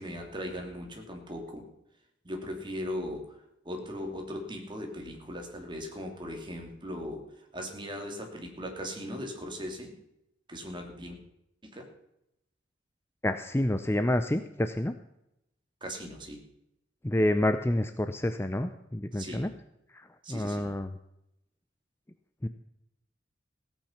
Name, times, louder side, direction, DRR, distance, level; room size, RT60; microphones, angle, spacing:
voice 1, 0.0-1.7 2.2-3.2 3.6-7.2 7.5-9.9 10.5-11.2 11.6-11.9 15.8-16.4 19.1-19.5 20.2-20.7, equal, 25° right, 2 dB, 2.8 m, -38 dB
voice 2, 13.2-14.9 17.0-19.5 19.9-21.0 22.4-22.5, left 1 dB, 15° left, 9 dB, 0.6 m, -28 dB
16.5 x 8.9 x 5.8 m, 0.82 s
head